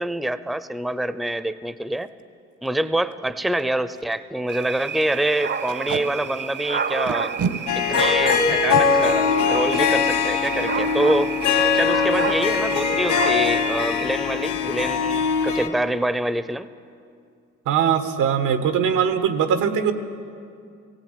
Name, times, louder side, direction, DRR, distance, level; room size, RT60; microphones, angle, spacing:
voice 1, 0.0-2.1 2.6-7.3 7.9-11.3 11.7-16.7, right 1 dB, ahead, 14 dB, 0.6 m, -25 dB
Packing tape duct tape, 2.0-2.2 2.7-2.8 3.0-3.1 3.6-3.7 4.0-4.1 4.5-4.6 5.7-6.0 7.1-7.6 8.5-8.8 10.4-10.6 10.9-11.1 11.3-11.8, right 6 dB, 75° right, 1.5 m, -28 dB
sound 1, 4.5-14.1, right 7 dB, 35° right, 0.8 m, -30 dB
Harp, 7.7-15.7, left 6 dB, 75° left, 2.3 m, -21 dB
voice 2, 17.6-19.9, right 8 dB, 90° right, 8 dB, 1.6 m, -21 dB
19.0 x 16.5 x 9.2 m, 2.4 s
cardioid pair, 90°, 30 cm